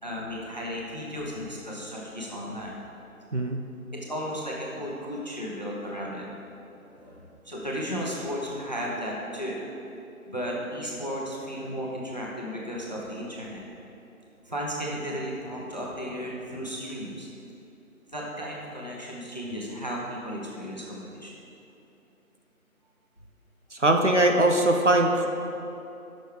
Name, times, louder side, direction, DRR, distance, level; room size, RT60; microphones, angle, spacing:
voice 1, 0.0-2.8 3.9-6.3 6.7-9.6 10.3-13.6 14.4-17.3 18.1-21.3, equal, 30° left, -3 dB, 1.0 m, -34 dB
voice 2, 23.8-25.3, right 1 dB, 55° right, 3 dB, 0.7 m, -21 dB
12.5 x 6.4 x 3.4 m, 2.9 s
figure-of-eight pair, 175°, 43 cm